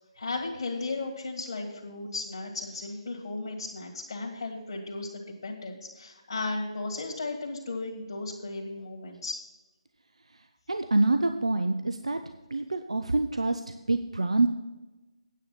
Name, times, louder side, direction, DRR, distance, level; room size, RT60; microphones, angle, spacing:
voice 1, 0.2-9.4, left 3 dB, 50° left, -1 dB, 2.0 m, -35 dB
voice 2, 10.7-12.2 12.5-14.5, right 2 dB, 70° right, 8 dB, 0.6 m, -26 dB
9.4 x 7.8 x 5.7 m, 1.1 s
figure-of-eight pair, 145°, 3 cm